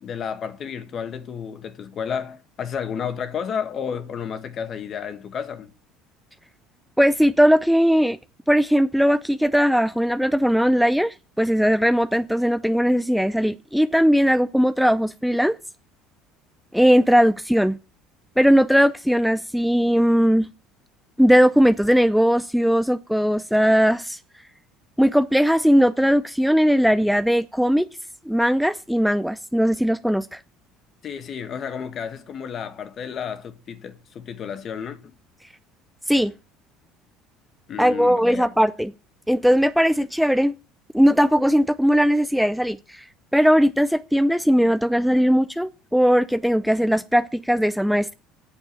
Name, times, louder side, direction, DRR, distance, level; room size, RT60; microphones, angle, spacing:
voice 1, 0.0-5.7 31.0-35.0 37.7-38.5, left 7 dB, 45° left, 1.7 m, -31 dB
voice 2, 7.0-8.2 8.5-15.6 16.7-17.8 18.4-20.5 21.2-24.2 25.0-27.9 28.3-30.4 36.1-36.3 37.8-38.9 39.3-40.5 40.9-43.0 43.3-48.1, equal, ahead, 0.5 m, -19 dB
8.8 x 7.3 x 8.9 m
supercardioid pair, 110°, 0 cm